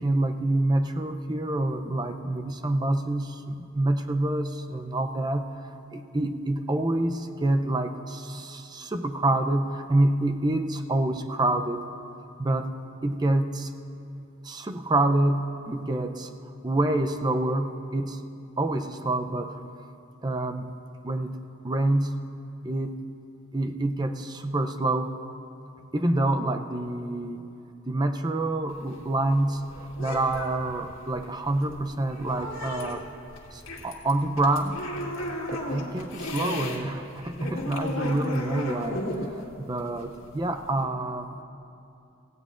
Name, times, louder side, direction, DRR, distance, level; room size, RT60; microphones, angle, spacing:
voice 1, 0.0-11.8 12.4-12.7 13.0-13.7 14.4-16.3 16.6-18.2 18.6-19.6 20.2-20.7 21.0-21.4 21.6-22.2 22.6-23.0 23.5-25.2 25.9-27.4 27.9-33.0 33.5-34.8 35.5-41.3, right 2 dB, 20° right, 7 dB, 0.5 m, -27 dB
sound 1, 28.7-36.8 37.1-40.9, left 1 dB, 75° left, 1.8 m, -35 dB
17.0 x 16.5 x 2.5 m, 2.8 s
head